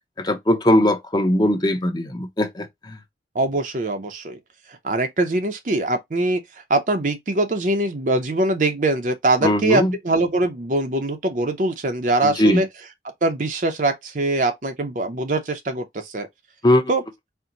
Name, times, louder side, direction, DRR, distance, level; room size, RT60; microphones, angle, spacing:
voice 1, 0.2-3.0 9.4-9.9 12.2-12.6 16.6-16.8, left 1 dB, 25° left, 0.7 m, -20 dB
voice 2, 3.3-4.4 4.8-6.4 6.7-12.7 13.2-16.3 16.9-17.0, right 2 dB, 45° right, 0.6 m, -22 dB
4.4 x 2.1 x 3.7 m
head